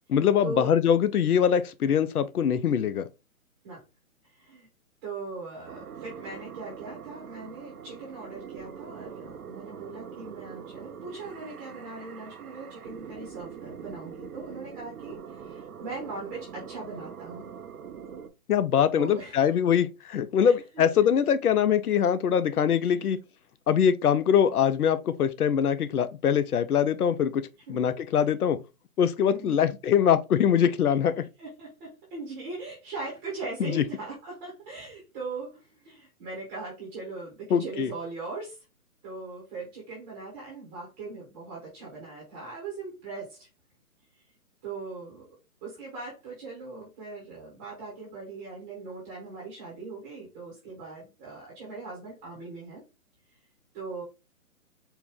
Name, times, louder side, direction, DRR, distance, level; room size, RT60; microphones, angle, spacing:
voice 1, 0.1-3.1 18.5-23.2 23.7-28.6 29.0-31.3 33.8-33.9 37.5-37.9, left 8 dB, 85° left, 0.6 m, -23 dB
voice 2, 4.3-4.7 5.0-17.5 18.9-19.5 20.4-20.5 21.0-21.1 22.8-22.9 27.7-27.8 29.3-29.6 31.4-38.6 39.0-43.5 44.6-45.2 45.6-52.8 53.7-54.0, right 3 dB, 10° right, 0.8 m, -40 dB
sound 1, 5.7-18.3, right 7 dB, 75° right, 0.8 m, -43 dB
4.5 x 2.2 x 3.4 m
hypercardioid pair, 155°, 44 cm